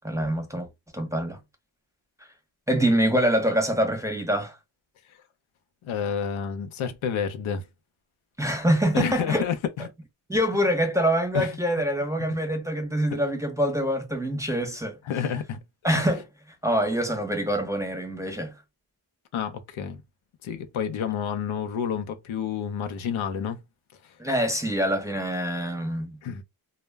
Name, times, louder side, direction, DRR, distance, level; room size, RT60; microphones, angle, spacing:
voice 1, 0.0-0.7 0.9-1.4 2.7-4.6 8.4-9.5 10.3-15.0 15.8-16.3 16.6-18.5 24.2-26.2, equal, 5° right, 0.7 m, -25 dB
voice 2, 5.8-7.7 8.9-9.9 11.3-11.6 15.1-15.6 15.9-16.1 19.3-20.0 20.4-23.6 24.0-24.1 26.2-26.4, left 7 dB, 80° left, 0.6 m, -29 dB
2.1 x 2.0 x 3.3 m
cardioid pair, 70°, 48 cm